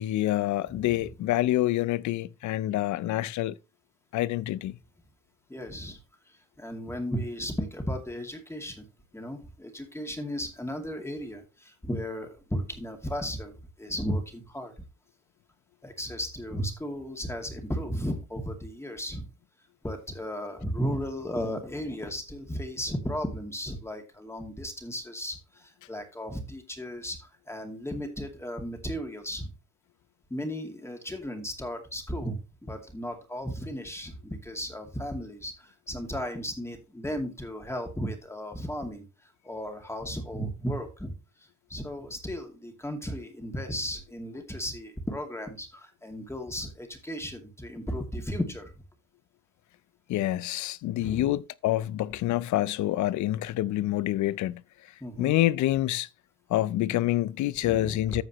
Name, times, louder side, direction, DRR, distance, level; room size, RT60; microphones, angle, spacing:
voice 1, 0.0-3.5 4.1-4.8 50.1-54.6 55.2-56.1 56.5-58.2, left 15 dB, 70° left, 0.5 m, -27 dB
voice 2, 0.7-1.1 5.5-6.0 6.6-8.9 9.1-14.7 15.8-19.3 19.8-27.2 27.5-29.5 30.3-39.0 39.4-41.1 41.7-48.7 51.0-51.3 55.0-55.4 57.6-58.0, equal, 10° left, 2.3 m, -35 dB
14.5 x 4.9 x 3.0 m
cardioid pair, 90°, 30 cm